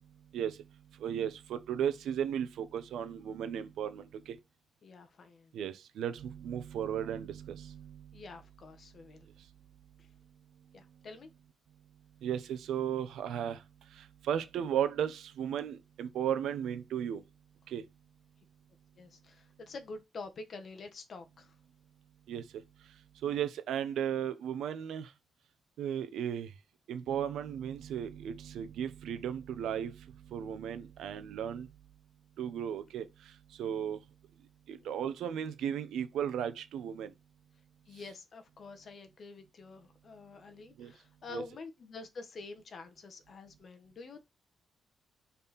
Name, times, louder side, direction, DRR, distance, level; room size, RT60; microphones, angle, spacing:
voice 1, 1.0-4.4 5.5-8.0 12.2-13.6 14.0-17.2 17.7-17.8 22.3-22.6 23.2-25.1 25.8-26.5 26.9-30.0 30.3-31.7 32.4-33.1 33.6-34.0 34.7-37.1 40.8-40.9 41.3-41.4, right 9 dB, 85° right, 0.9 m, -35 dB
voice 2, 4.8-5.5 8.1-9.3 10.0-10.1 10.7-11.3 19.0-21.5 34.8-34.9 37.9-44.2, left 3 dB, 40° left, 1.2 m, -47 dB
5.5 x 4.3 x 4.2 m
cardioid pair, 160°, 0 cm